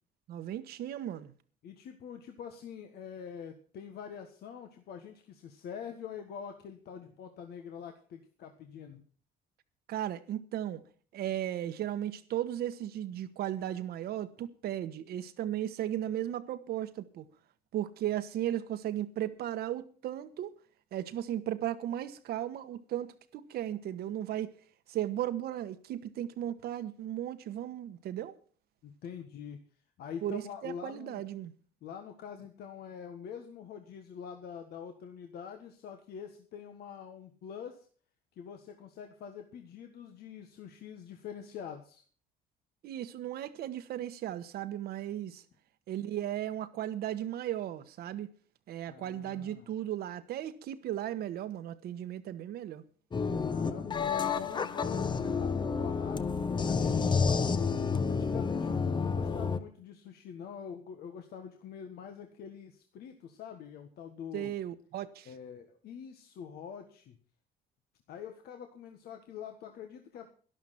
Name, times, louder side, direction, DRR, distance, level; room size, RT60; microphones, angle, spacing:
voice 1, 0.3-1.3 9.9-10.8 11.1-17.3 17.7-20.5 20.9-24.5 24.9-28.3 30.2-31.5 42.8-45.4 45.9-48.3 48.7-52.8 64.3-65.3, right 12 dB, 70° right, 1.2 m, -36 dB
voice 2, 1.6-9.0 28.8-29.6 30.0-31.2 31.8-37.9 38.4-42.0 48.9-49.7 53.5-56.2 56.6-57.7 58.1-64.5 65.2-67.2 68.1-70.3, left 7 dB, 70° left, 1.5 m, -45 dB
sound 1, 53.1-59.6, left 5 dB, 25° left, 0.9 m, -30 dB
12.0 x 11.5 x 5.9 m
cardioid pair, 110°, 17 cm